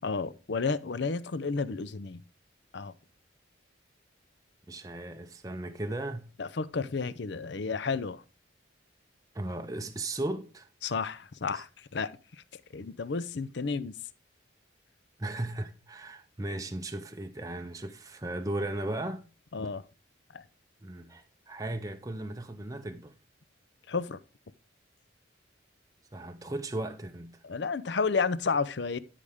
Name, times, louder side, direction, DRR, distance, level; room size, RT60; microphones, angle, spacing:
voice 1, 0.0-2.2 2.7-2.9 6.4-8.2 10.8-12.1 12.7-13.9 19.5-19.8 20.3-20.4 23.9-24.2 27.4-29.0, left 4 dB, 60° left, 0.6 m, -31 dB
voice 2, 4.7-6.3 9.3-10.7 11.5-11.6 15.2-19.3 20.8-23.2 26.1-27.4, right 1 dB, 15° right, 0.5 m, -36 dB
12.5 x 5.0 x 3.6 m
head